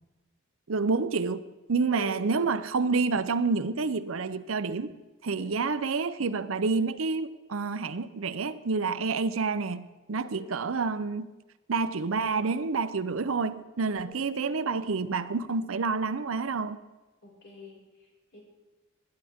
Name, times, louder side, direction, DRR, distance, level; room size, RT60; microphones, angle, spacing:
voice 1, 0.7-4.9 5.2-11.3 11.7-16.8, right 4 dB, 75° right, 0.6 m, -28 dB
voice 2, 1.9-2.3 5.4-5.6 10.3-10.6 14.0-15.0 17.2-18.4, equal, 55° left, 5.6 m, -46 dB
21.0 x 10.5 x 3.6 m
head